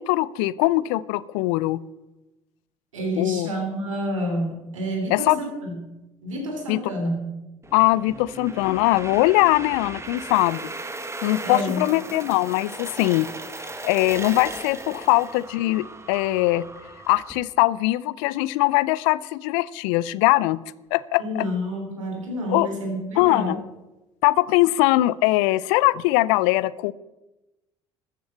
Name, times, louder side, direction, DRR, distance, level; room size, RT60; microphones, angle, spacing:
voice 1, 0.0-1.8 3.2-3.5 5.1-5.4 6.7-6.8 7.7-10.7 11.2-13.3 13.8-16.7 17.1-20.6 20.9-21.4 22.5-22.7 23.2-23.6 24.2-26.9, left 18 dB, 70° left, 20 dB, 0.5 m, -21 dB
voice 2, 2.9-5.9 6.2-7.3 11.4-11.8 21.2-23.6, equal, 90° right, 2 dB, 3.1 m, -29 dB
sound 1, 7.6-17.4, right 2 dB, 15° right, 1.5 m, -37 dB
13.5 x 7.6 x 7.1 m, 1.0 s
hypercardioid pair, 60°, 16 cm